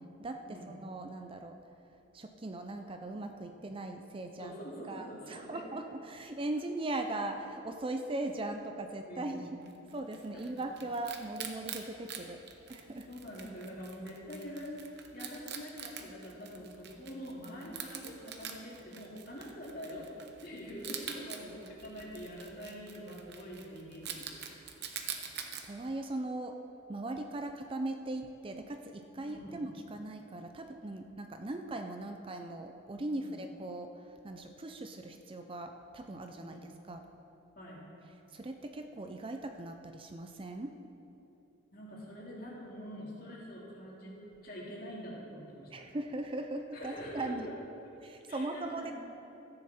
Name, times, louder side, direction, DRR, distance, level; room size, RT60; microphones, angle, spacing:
voice 1, 0.2-1.6 2.1-4.5 4.9-9.5 9.9-12.4 12.7-13.1 25.1-25.2 25.6-26.6 26.9-37.0 38.3-40.8 45.7-47.5 48.0-48.9, right 2 dB, 25° right, 5 dB, 0.5 m, -39 dB
voice 2, 4.4-5.7 9.1-9.4 10.3-10.4 13.1-14.7 15.1-20.1 20.4-24.7 29.2-29.6 33.1-33.3 36.4-36.7 37.6-37.8 41.7-44.2 44.4-45.8 46.7-47.5 48.3-48.9, equal, 50° left, -4 dB, 2.8 m, -45 dB
Wild animals, 9.7-25.6, right 7 dB, 55° right, 0.9 m, -46 dB
14.0 x 9.7 x 4.3 m, 3.0 s
head